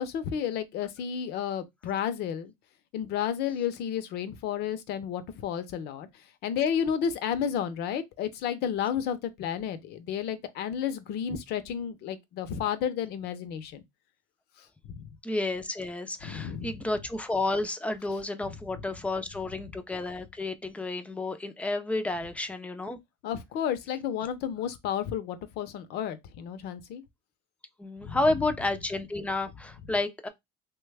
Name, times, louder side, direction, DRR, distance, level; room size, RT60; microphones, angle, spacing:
voice 1, 0.0-2.5 2.9-6.1 6.4-13.8 14.9-15.2 16.2-16.7 18.5-18.8 23.2-27.0 28.0-28.2, left 8 dB, 55° left, 0.6 m, -32 dB
voice 2, 15.2-23.0 27.8-30.3, left 2 dB, 5° left, 0.4 m, -31 dB
3.1 x 2.2 x 3.3 m
cardioid pair, 125°, 20 cm